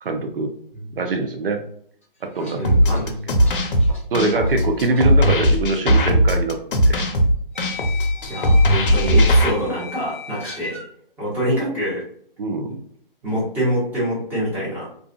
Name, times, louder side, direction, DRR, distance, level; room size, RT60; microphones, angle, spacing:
voice 1, 0.0-0.5 0.9-1.6 2.3-2.6 2.9-3.0 4.1-6.6 6.9-7.0 12.4-12.7, right 3 dB, 70° right, 5 dB, 0.7 m, -23 dB
sound 1, 2.0-5.0 5.3-5.5 6.6-6.7 7.5-10.9, left 4 dB, 15° left, 0.3 m, -38 dB
voice 2, 2.5-3.2 8.3-10.8 11.2-12.0 13.2-14.9, equal, 5° right, -9 dB, 0.8 m, -25 dB
sound 2, 2.6-9.5, equal, 65° left, 0.6 m, -17 dB
2.6 x 2.4 x 2.3 m, 0.62 s
hypercardioid pair, 150°, 29 cm